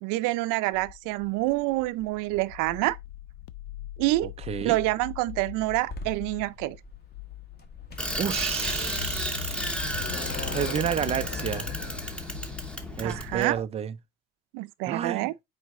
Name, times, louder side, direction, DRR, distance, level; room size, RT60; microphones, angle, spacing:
voice 1, 0.0-3.0 4.0-4.3 4.6-6.8 13.0-13.6 14.5-15.3, right 19 dB, 65° right, 0.6 m, -27 dB
sound 1, 0.7-13.7, left 13 dB, 80° left, 0.6 m, -41 dB
voice 2, 4.2-4.8 8.2-9.7 10.5-11.7 13.0-13.9 14.9-15.3, right 9 dB, 20° right, 0.4 m, -30 dB
sound 2, 5.8-13.4, left 3 dB, 30° left, 1.5 m, -41 dB
Bicycle, 8.0-13.5, equal, 5° left, 0.9 m, -33 dB
6.3 x 4.6 x 3.6 m
cardioid pair, 135°, 34 cm